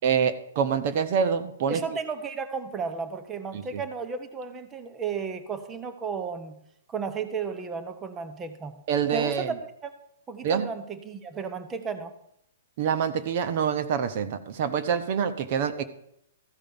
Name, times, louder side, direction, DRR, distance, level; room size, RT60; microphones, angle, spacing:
voice 1, 0.0-1.8 3.5-3.8 8.9-9.5 10.4-10.7 12.8-15.8, right 7 dB, 45° right, 11 dB, 0.8 m, -26 dB
voice 2, 1.7-6.6 6.9-8.8 9.1-9.5 9.8-9.9 10.3-12.1, right 5 dB, 15° right, 9 dB, 0.9 m, -33 dB
14.5 x 5.2 x 7.0 m, 0.76 s
hypercardioid pair, 160°, 0 cm